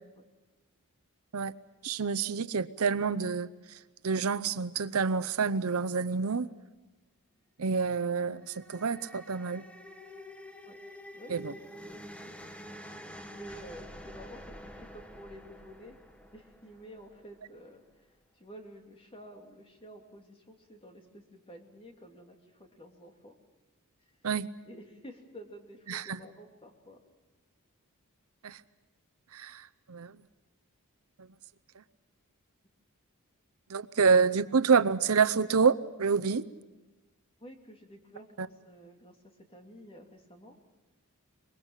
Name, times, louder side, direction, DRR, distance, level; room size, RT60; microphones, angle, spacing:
voice 1, 1.8-3.8 4.0-6.5 7.6-9.6 11.3-11.5 24.2-24.5 25.9-26.2 28.4-28.6 29.3-30.2 31.2-31.3 31.8-31.9 33.7-36.5 38.4-38.5, right 5 dB, 70° right, 15 dB, 0.7 m, -28 dB
sound 1, 8.2-17.5, equal, 5° left, 1.3 m, -48 dB
voice 2, 11.1-12.3 13.3-16.0 16.3-23.4 24.6-27.0 37.4-40.5, equal, 25° left, 3 dB, 3.0 m, -50 dB
24.5 x 21.5 x 7.4 m, 1.2 s
head